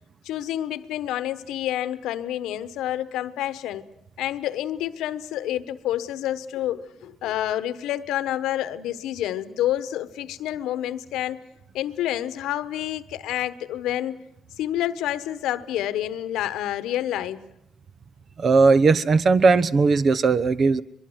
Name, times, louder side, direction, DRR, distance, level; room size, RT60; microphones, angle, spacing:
voice 1, 0.2-3.9 4.2-11.4 11.7-14.2 14.6-17.4, left 12 dB, 90° left, 1.1 m, -28 dB
voice 2, 18.4-20.8, right 4 dB, 50° right, 1.0 m, -18 dB
23.0 x 23.0 x 8.0 m
cardioid pair, 90°, 0 cm